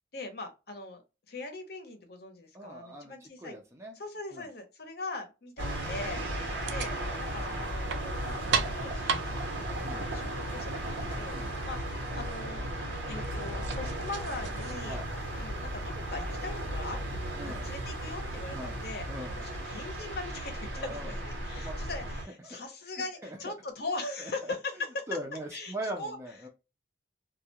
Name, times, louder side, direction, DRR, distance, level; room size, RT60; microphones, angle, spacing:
voice 1, 0.1-1.0 1.3-3.6 3.9-6.2 6.7-6.9 7.2-8.4 8.7-12.6 13.1-15.0 15.4-19.1 19.4-24.7 25.5-26.2, left 3 dB, 55° left, 0.7 m, -41 dB
voice 2, 2.5-3.9 4.3-4.5 6.1-6.3 9.8-10.1 11.3-11.5 14.8-15.1 17.4-17.7 18.5-18.8 19.1-19.4 20.8-21.2 21.5-21.8 22.2-22.6 23.0-23.5 24.2-24.5 25.1-26.5, right 1 dB, 15° right, 0.5 m, -41 dB
sound 1, 5.6-22.2, right 1 dB, 90° right, 1.0 m, -35 dB
sound 2, 6.6-14.7, right 6 dB, 70° right, 0.4 m, -38 dB
2.3 x 2.1 x 2.7 m
head